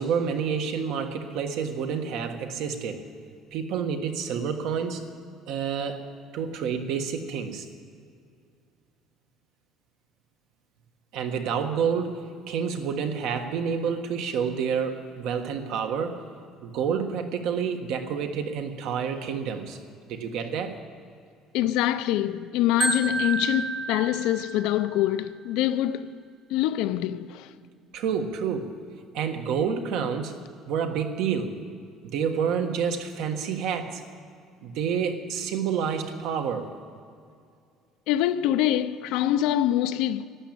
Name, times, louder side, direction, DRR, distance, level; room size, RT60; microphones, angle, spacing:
voice 1, 0.0-3.0 3.5-5.1 5.5-6.1 6.3-7.7 11.1-16.2 16.6-19.8 20.1-20.8 27.9-28.7 29.1-30.3 30.7-31.6 32.0-34.0 34.6-36.7, right 6 dB, 60° right, 1.4 m, -28 dB
voice 2, 21.5-26.1 26.5-27.5 38.1-40.3, left 12 dB, 70° left, 0.6 m, -25 dB
Marimba xylophone, 22.8-24.9, right 4 dB, 25° right, 1.2 m, -30 dB
12.5 x 12.0 x 8.8 m
cardioid pair, 175°, 0 cm